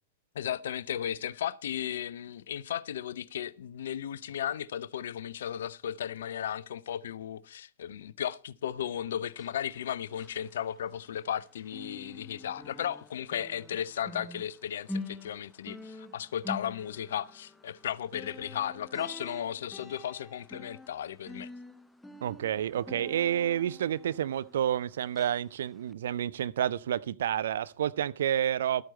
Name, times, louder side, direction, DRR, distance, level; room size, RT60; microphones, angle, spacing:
voice 1, 0.3-21.5, left 10 dB, 60° left, 0.5 m, -35 dB
sound 1, 9.2-11.4 11.7-24.8 25.1-25.4 25.9-26.0, left 2 dB, 5° left, 0.6 m, -46 dB
voice 2, 22.2-28.8, right 10 dB, 60° right, 0.4 m, -29 dB
12.5 x 8.9 x 4.2 m
figure-of-eight pair, 95°, 0 cm